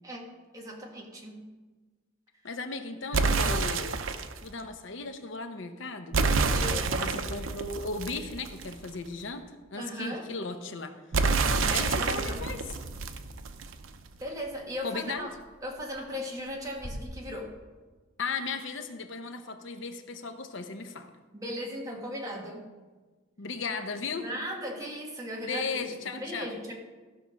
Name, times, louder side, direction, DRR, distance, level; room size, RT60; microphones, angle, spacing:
voice 1, 0.5-1.5 6.5-7.1 9.8-10.3 11.6-12.4 14.2-15.3 15.6-17.5 21.3-22.7 24.2-26.7, equal, 20° right, -1 dB, 1.7 m, -37 dB
voice 2, 2.4-4.1 4.4-6.1 7.0-11.0 11.7-12.6 14.8-15.3 18.2-21.1 23.4-24.3 25.4-26.5, left 4 dB, 65° left, 7 dB, 0.8 m, -36 dB
sound 1, 3.1-4.4 6.1-8.9 11.1-13.9, right 4 dB, 90° right, 0.7 m, -28 dB
sound 2, 12.5-17.0, equal, 25° left, 0.9 m, -48 dB
14.5 x 6.0 x 5.1 m, 1.3 s
head